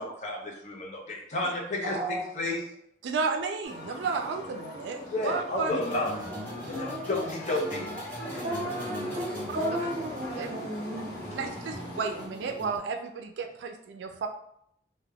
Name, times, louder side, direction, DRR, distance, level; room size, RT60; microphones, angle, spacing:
voice 1, 0.0-2.7 5.1-6.1 6.7-7.9 8.3-8.7, left 2 dB, 40° left, -1 dB, 0.5 m, -32 dB
voice 2, 1.8-2.2 6.8-7.3 8.4-11.5, right 1 dB, 40° right, -3 dB, 0.8 m, -34 dB
voice 3, 3.0-5.8 9.5-9.9 10.4-10.7 11.3-14.3, right 4 dB, 85° right, 6 dB, 0.3 m, -33 dB
sound 1, 3.6-12.3, left 1 dB, 85° left, 0.9 m, -42 dB
sound 2, 5.7-12.8, left 1 dB, 10° left, 0.8 m, -40 dB
2.2 x 2.1 x 3.4 m, 0.72 s
head